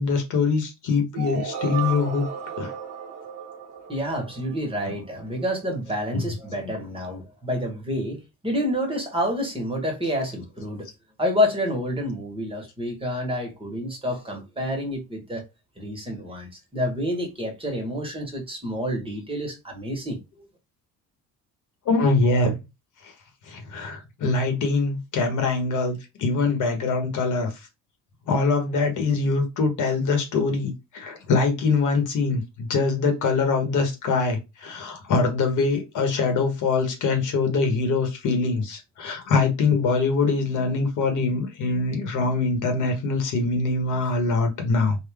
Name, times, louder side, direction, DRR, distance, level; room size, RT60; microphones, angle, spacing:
voice 1, 0.0-2.3 2.6-2.7 6.1-6.2 21.8-22.6 23.0-23.1 23.5-27.5 28.3-45.0, left 3 dB, 60° left, 1.4 m, -23 dB
sound 1, 1.1-5.1, right 7 dB, 50° right, 1.2 m, -34 dB
voice 2, 3.9-10.9 11.2-15.4 15.8-20.5, equal, 15° right, 1.5 m, -28 dB
3.9 x 2.6 x 3.5 m
cardioid pair, 110°, 33 cm